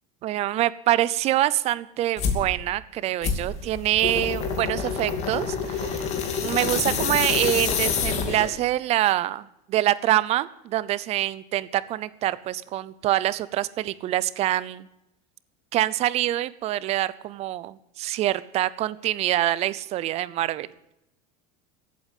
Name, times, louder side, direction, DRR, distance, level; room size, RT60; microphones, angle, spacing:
voice 1, 0.2-14.9 15.7-20.7, right 14 dB, 35° right, 18 dB, 0.6 m, -25 dB
sound 1, 2.2-2.5 3.2-8.6, left 6 dB, 35° left, 2.5 m, -27 dB
15.0 x 8.5 x 9.5 m, 0.86 s
supercardioid pair, 155°, 19 cm